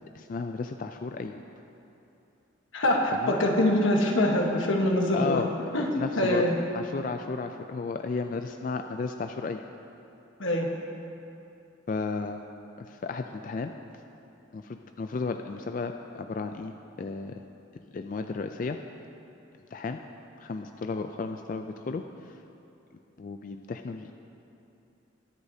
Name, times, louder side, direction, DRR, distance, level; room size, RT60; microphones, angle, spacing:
voice 1, 0.1-1.4 3.1-3.3 5.1-5.5 5.9-6.4 6.7-9.6 11.9-12.4 12.8-13.7 14.5-16.7 17.0-17.4 17.9-18.8 19.7-20.0 20.4-22.4 23.2-24.1, left 4 dB, 45° left, 6 dB, 0.3 m, -33 dB
voice 2, 2.7-5.4 5.7-5.9 6.2-6.6 10.4-10.7, left 1 dB, 90° left, 1 dB, 1.3 m, -24 dB
21.0 x 8.1 x 2.8 m, 2.8 s
head